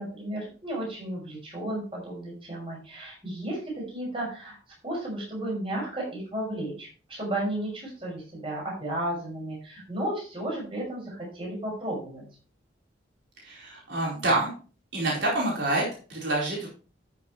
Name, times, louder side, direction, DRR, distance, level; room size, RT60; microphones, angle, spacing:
voice 1, 0.0-4.6 4.8-12.2, right 1 dB, 30° right, -3 dB, 6.1 m, -33 dB
voice 2, 13.4-14.5 14.9-16.7, right 2 dB, 70° right, -5 dB, 4.4 m, -27 dB
13.0 x 6.9 x 3.2 m, 0.37 s
head